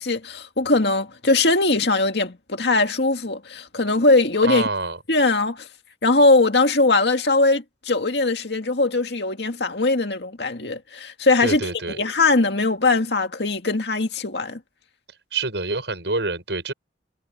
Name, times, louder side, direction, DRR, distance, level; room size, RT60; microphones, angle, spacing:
voice 1, 0.0-4.6 5.1-5.7 6.0-11.6 12.0-14.6, left 3 dB, 70° left, 2.1 m, -20 dB
voice 2, 4.4-5.0 11.4-12.0 15.3-16.7, right 3 dB, 75° right, 7.2 m, -26 dB
head